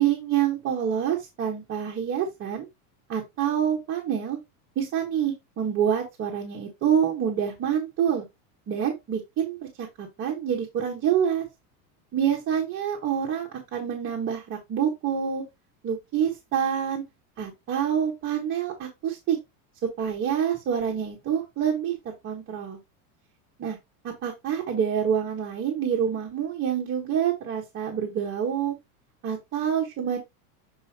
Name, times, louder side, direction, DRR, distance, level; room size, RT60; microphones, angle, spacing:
voice 1, 0.0-2.7 3.1-4.4 4.7-8.2 8.7-11.4 12.1-15.4 15.8-17.0 17.4-19.4 20.0-22.8 23.6-23.8 24.0-28.8 29.2-30.2, right 8 dB, 25° right, -1 dB, 1.4 m, -27 dB
7.9 x 4.5 x 2.9 m, 0.21 s
supercardioid pair, 160°, 44 cm